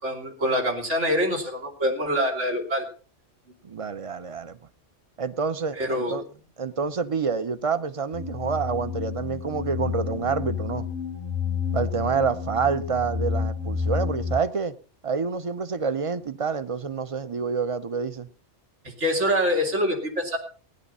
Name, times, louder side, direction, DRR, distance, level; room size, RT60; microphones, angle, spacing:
voice 1, 0.0-2.8 5.8-6.2 19.0-20.4, equal, 85° right, 3.4 m, -25 dB
voice 2, 3.6-4.6 5.2-6.2 6.6-10.9 11.7-14.7 15.0-18.3, right 5 dB, 35° right, 0.7 m, -27 dB
sound 1, 8.1-14.4, left 6 dB, 65° right, 3.4 m, -30 dB
16.5 x 10.0 x 5.5 m
omnidirectional pair, 1.2 m